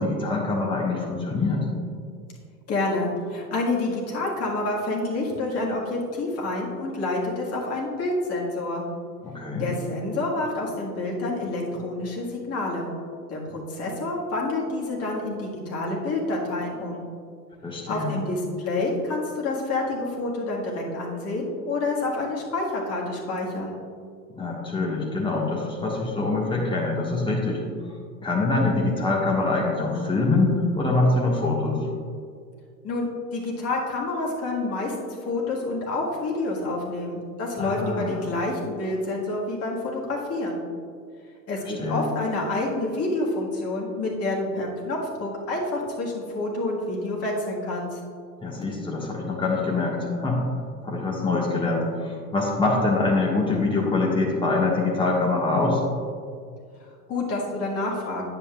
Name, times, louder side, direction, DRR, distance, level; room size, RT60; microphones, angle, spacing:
voice 1, 0.0-1.6 9.2-9.7 17.6-18.2 24.3-27.6 28.2-31.8 37.6-38.3 41.6-42.1 48.4-50.4 50.8-55.8, left 3 dB, 10° left, -3 dB, 1.7 m, -24 dB
voice 2, 2.7-8.8 9.6-12.9 13.3-17.0 17.9-23.8 32.8-40.6 41.5-48.0 57.1-58.2, left 2 dB, 30° left, -3 dB, 1.8 m, -28 dB
9.6 x 8.0 x 2.4 m, 2.2 s
figure-of-eight pair, 90°, 48 cm